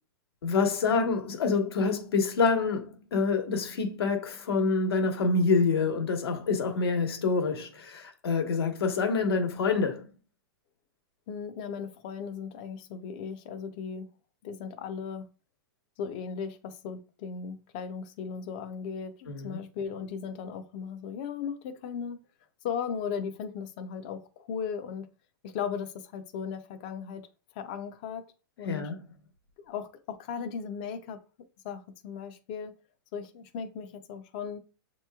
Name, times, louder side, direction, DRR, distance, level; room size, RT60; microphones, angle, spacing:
voice 1, 0.4-10.1 19.3-19.6 28.6-29.0, left 4 dB, 90° left, 1.2 m, -27 dB
voice 2, 11.3-14.1 14.4-15.3 16.0-22.2 22.6-25.1 25.4-27.2 27.6-28.2 28.6-28.9 29.7-31.2 31.6-32.7 33.1-34.6, left 6 dB, 20° left, 0.4 m, -37 dB
7.3 x 2.9 x 2.3 m
hypercardioid pair, 180°, 12 cm